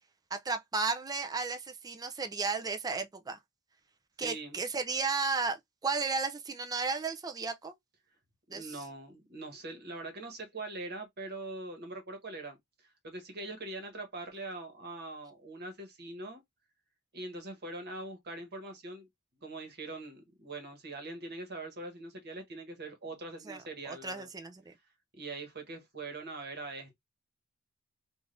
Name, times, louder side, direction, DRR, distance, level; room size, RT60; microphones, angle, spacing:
voice 1, 0.3-3.4 4.2-7.7 8.5-8.8 23.5-24.7, right 4 dB, 15° right, 0.4 m, -34 dB
voice 2, 4.2-4.6 8.5-16.4 17.1-19.1 19.4-24.3 25.1-27.0, right 2 dB, 45° right, 1.1 m, -42 dB
3.3 x 2.4 x 2.5 m
head